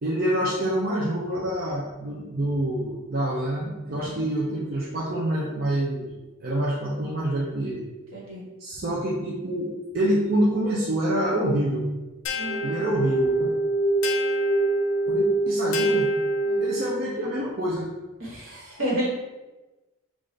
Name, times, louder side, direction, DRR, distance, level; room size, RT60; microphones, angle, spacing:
voice 1, 0.0-6.1 6.4-7.8 8.6-11.8 12.6-13.5 15.1-16.1 16.6-17.9, right 1 dB, 45° right, -5 dB, 0.5 m, -26 dB
voice 2, 3.9-4.2 8.1-8.4 12.4-12.8 16.4-16.6 18.2-19.1, right 1 dB, 80° right, -6 dB, 1.4 m, -31 dB
sound 1, 12.3-17.0, right 1 dB, 80° left, 0.5 m, -24 dB
3.8 x 2.5 x 3.2 m, 1.1 s
head